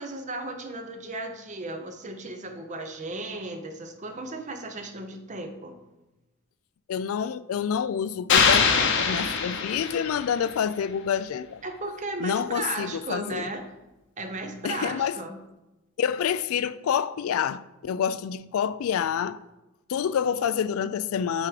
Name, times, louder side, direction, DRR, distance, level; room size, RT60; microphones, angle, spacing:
voice 1, 0.0-5.8 11.6-13.7 14.2-15.4, right 2 dB, 35° right, 0.7 m, -35 dB
voice 2, 6.9-11.6 12.2-13.5 14.6-15.2 16.0-19.4 19.9-21.5, left 8 dB, 75° left, 0.3 m, -27 dB
sound 1, 8.3-10.5, left 5 dB, 60° left, 0.8 m, -23 dB
7.6 x 3.6 x 4.9 m
head